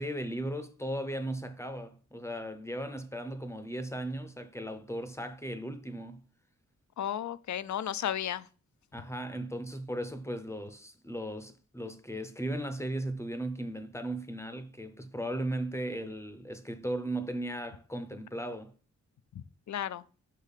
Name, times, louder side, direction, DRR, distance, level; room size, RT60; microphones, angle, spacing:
voice 1, 0.0-6.2 8.9-18.7, right 1 dB, 10° left, 0.6 m, -37 dB
voice 2, 7.0-8.5 19.3-20.0, left 10 dB, 75° left, 0.5 m, -34 dB
6.2 x 5.2 x 4.1 m
wide cardioid pair, 145°, 29 cm